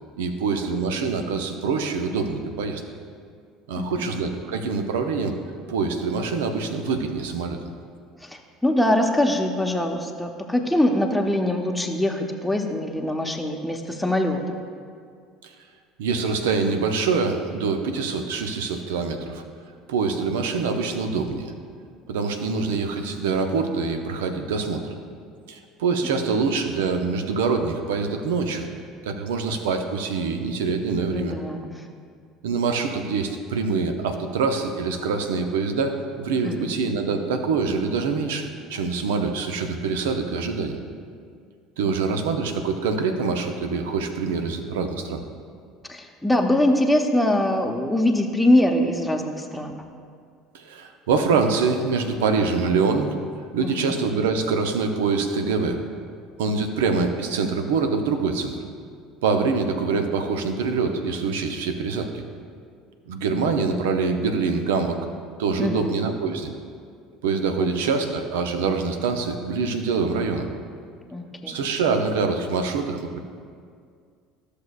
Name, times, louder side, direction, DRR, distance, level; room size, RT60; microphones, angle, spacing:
voice 1, 0.2-2.8 3.7-5.3 5.7-7.6 16.0-19.4 19.9-21.5 22.1-24.9 25.5-28.7 29.0-31.4 32.4-40.8 41.8-45.2 50.5-53.2 53.5-55.8 56.4-58.6 59.2-62.2 63.1-65.0 65.4-66.5 67.2-70.5 71.5-73.2, right 4 dB, 70° right, 6 dB, 0.7 m, -25 dB
voice 2, 3.7-4.1 8.2-14.6 26.3-26.4 31.1-31.9 36.4-36.7 41.8-42.2 45.9-49.8 53.6-53.9 65.6-65.9 67.6-67.7 71.1-71.6, left 1 dB, 5° left, 2 dB, 0.9 m, -23 dB
13.5 x 6.6 x 2.4 m, 2.2 s
figure-of-eight pair, 65°, 0 cm